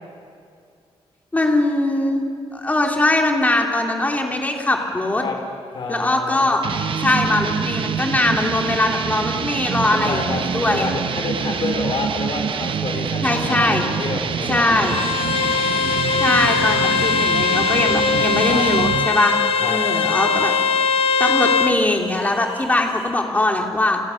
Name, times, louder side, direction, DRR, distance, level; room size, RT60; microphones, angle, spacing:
voice 1, 1.3-5.2 5.9-6.6 7.0-10.9 13.2-13.8 14.5-15.0 16.2-19.4 19.7-20.5 21.2-24.0, left 2 dB, 15° left, 1 dB, 3.1 m, -21 dB
voice 2, 5.7-6.6 9.9-14.9 16.2-16.8 18.5-18.7 19.6-19.8, left 4 dB, 50° left, 3 dB, 4.6 m, -29 dB
sound 1, 6.6-19.2, right 7 dB, 55° right, 1.0 m, -25 dB
Bowed string instrument, 14.8-21.8, left 6 dB, 70° left, 1.2 m, -20 dB
sound 2, 16.0-23.1, right 2 dB, 20° right, 3.4 m, -41 dB
30.0 x 28.5 x 6.5 m, 2.4 s
wide cardioid pair, 155°, 10 cm